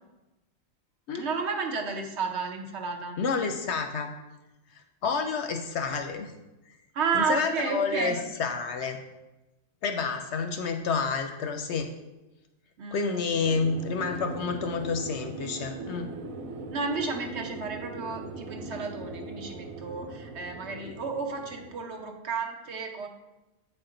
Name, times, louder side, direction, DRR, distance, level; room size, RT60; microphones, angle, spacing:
voice 1, 1.1-3.2 6.9-8.2 12.8-13.2 16.7-23.1, right 5 dB, 60° right, 3 dB, 1.0 m, -32 dB
voice 2, 3.2-4.1 5.0-6.3 7.1-9.0 9.8-11.9 12.9-16.1, left 5 dB, 65° left, 6 dB, 0.8 m, -29 dB
sound 1, 13.4-21.8, right 2 dB, 90° right, 1.0 m, -40 dB
7.7 x 4.4 x 3.8 m, 1.0 s
omnidirectional pair, 1.4 m